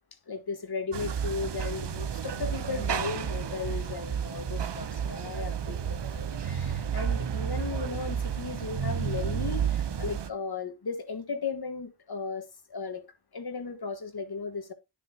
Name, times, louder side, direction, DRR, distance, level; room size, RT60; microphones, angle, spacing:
voice 1, 0.3-13.0 13.3-14.7, left 4 dB, 50° left, 1.7 m, -36 dB
sound 1, 0.9-10.3, right 8 dB, 60° right, 0.9 m, -31 dB
9.2 x 7.4 x 2.9 m
cardioid pair, 45°, 47 cm